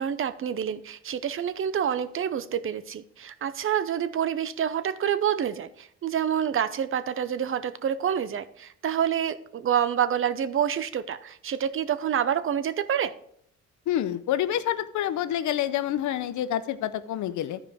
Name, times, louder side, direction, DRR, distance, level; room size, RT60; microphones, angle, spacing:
voice 1, 0.0-13.1, right 9 dB, 45° right, 0.6 m, -27 dB
voice 2, 13.9-17.6, left 11 dB, 75° left, 0.7 m, -27 dB
13.5 x 4.9 x 3.4 m
cardioid pair, 90°, 30 cm